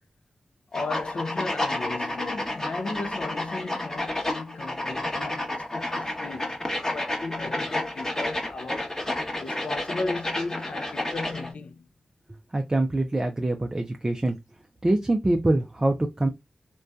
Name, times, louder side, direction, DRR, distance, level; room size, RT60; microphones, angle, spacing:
voice 1, 0.7-11.9, left 3 dB, 65° left, 0.4 m, -35 dB
sound 1, 0.7-11.5, left 1 dB, 20° left, 0.9 m, -30 dB
voice 2, 12.5-14.4 14.8-16.3, right 2 dB, 25° right, 0.4 m, -24 dB
2.6 x 2.2 x 2.2 m
cardioid pair, 50°, 2 cm